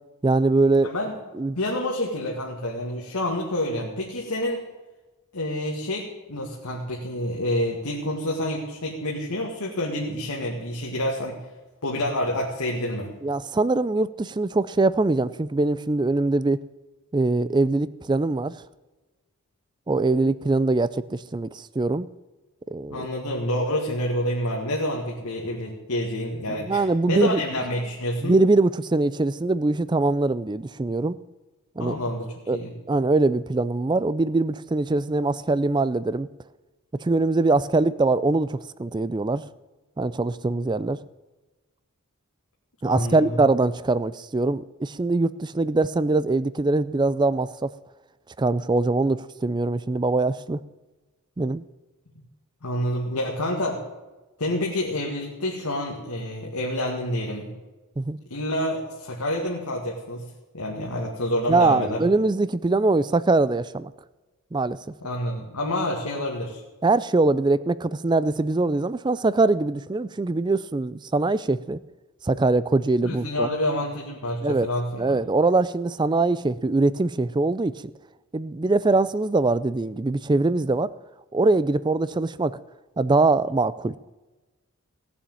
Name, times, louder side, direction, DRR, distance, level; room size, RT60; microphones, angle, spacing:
voice 1, 0.2-0.9 1.3-1.6 13.2-16.6 17.1-18.5 19.9-22.1 22.7-23.1 26.5-27.4 28.2-31.2 31.8-32.0 32.5-32.6 32.9-36.3 37.0-39.4 40.0-41.0 42.8-47.7 48.4-50.6 51.4-51.6 58.0-58.2 61.5-63.9 64.5-64.8 66.8-71.8 72.2-73.5 74.4-74.7 75.0-77.7 78.3-80.9 81.3-82.6 83.0-83.9, right 3 dB, 20° right, 17 dB, 0.4 m, -22 dB
voice 2, 0.8-1.2 1.6-4.6 5.3-11.4 11.8-13.1 22.9-28.4 31.8-32.7 42.9-43.4 52.6-53.8 54.4-57.5 58.3-60.3 60.5-62.0 65.0-66.6 73.0-75.2, left 1 dB, 90° left, -1 dB, 2.0 m, -28 dB
17.0 x 7.1 x 8.9 m, 1.2 s
head